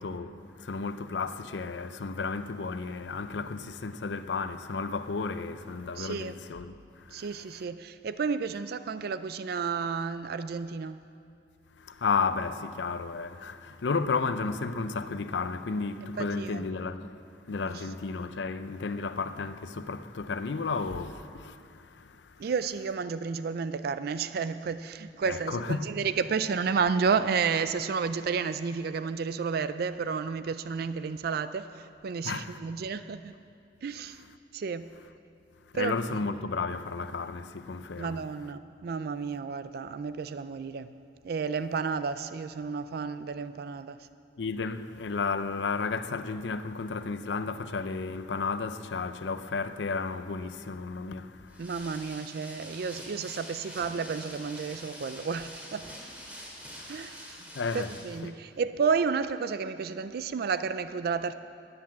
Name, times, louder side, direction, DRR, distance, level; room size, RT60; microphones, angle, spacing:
voice 1, 0.0-7.3 11.8-17.1 17.5-22.3 25.2-25.9 32.2-32.6 35.7-38.2 44.4-51.7 56.8-57.9 58.2-58.3, left 4 dB, 85° left, 0.6 m, -33 dB
voice 2, 6.0-6.4 7.1-11.0 16.0-16.7 17.7-17.8 22.4-33.3 33.8-34.2 34.5-34.9 35.7-36.0 38.0-40.9 41.2-44.0 51.6-55.9 56.9-57.4 57.7-61.4, right 5 dB, 60° right, 0.4 m, -31 dB
sound 1, 51.5-58.2, equal, 10° right, 2.3 m, -45 dB
13.5 x 9.7 x 7.3 m
head